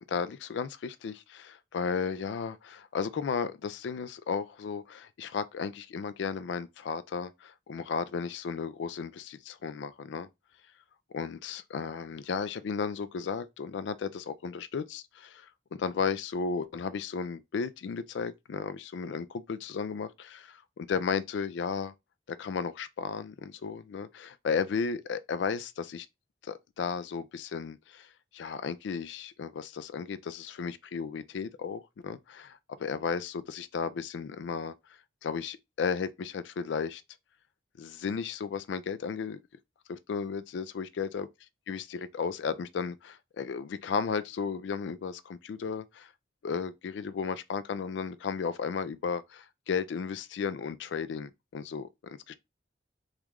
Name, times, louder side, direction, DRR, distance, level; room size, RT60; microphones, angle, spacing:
voice 1, 0.1-10.3 11.1-21.9 22.3-26.1 26.4-28.1 28.3-34.7 35.2-37.0 37.8-39.4 39.9-41.3 41.7-46.1 46.4-52.3, left 6 dB, 75° left, 0.3 m, -34 dB
3.0 x 2.4 x 3.4 m
head